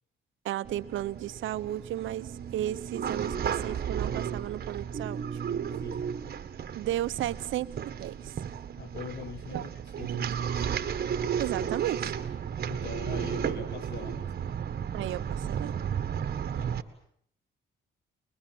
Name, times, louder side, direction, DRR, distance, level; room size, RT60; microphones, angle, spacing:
voice 1, 0.4-5.4 6.7-8.3 9.5-9.6 10.0-10.5 11.4-12.1 14.9-15.7, right 13 dB, 80° right, 13 dB, 1.0 m, -34 dB
sound 1, 0.6-16.8, right 8 dB, 50° right, 1.7 m, -33 dB
voice 2, 8.8-10.7 12.6-14.3 16.5-16.8, left 7 dB, 60° left, 10 dB, 1.4 m, -43 dB
24.5 x 22.0 x 7.8 m, 0.66 s
cardioid pair, 90°, 20 cm